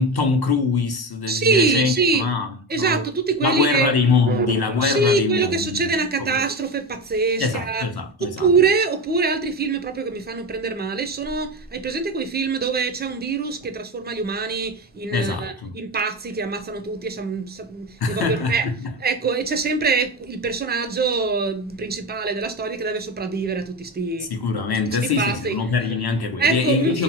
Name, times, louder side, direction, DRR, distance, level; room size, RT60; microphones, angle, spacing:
voice 1, 0.0-3.0 3.4-5.9 6.2-6.3 7.4-8.5 15.1-15.7 18.0-18.9 24.3-27.0, left 4 dB, 50° left, 0.5 m, -23 dB
voice 2, 1.3-2.3 2.7-3.9 4.2-7.9 8.2-18.7 19.0-24.3 25.0-25.6 26.4-27.0, right 4 dB, 25° right, 0.4 m, -24 dB
2.8 x 2.0 x 2.8 m
wide cardioid pair, 60°, 49 cm